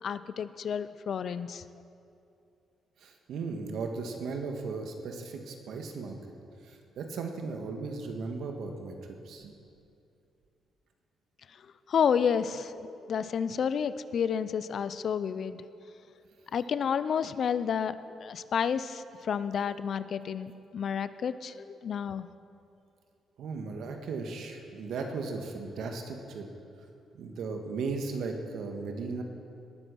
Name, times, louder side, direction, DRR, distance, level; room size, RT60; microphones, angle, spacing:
voice 1, 0.0-1.6 11.9-15.7 16.5-17.9 18.2-22.3, left 7 dB, 60° left, 14 dB, 0.5 m, -30 dB
voice 2, 3.0-6.1 6.6-9.0 9.2-9.5 23.4-26.5 27.1-29.2, right 4 dB, 75° right, 4 dB, 1.6 m, -36 dB
18.5 x 7.9 x 6.3 m, 2.6 s
cardioid pair, 80°, 0 cm